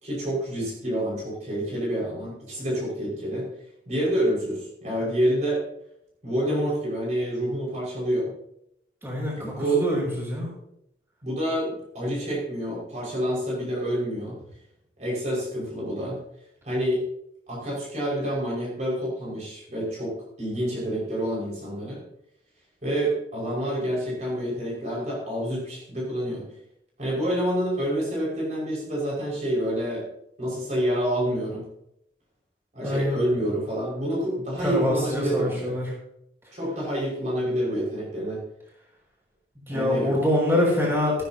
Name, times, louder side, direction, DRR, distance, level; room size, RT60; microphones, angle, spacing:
voice 1, 0.0-3.5 3.9-5.6 6.2-8.3 9.3-9.8 11.2-14.4 15.0-16.2 16.6-17.0 17.5-22.0 22.8-26.5 27.0-30.0 30.4-31.6 32.7-35.7 36.5-38.4 39.7-40.1, right 1 dB, 40° right, -5 dB, 5.6 m, -28 dB
voice 2, 9.0-10.5 32.8-33.2 34.6-35.9 39.7-41.2, left 1 dB, 15° right, -4 dB, 6.3 m, -25 dB
16.0 x 15.0 x 2.9 m, 0.78 s
head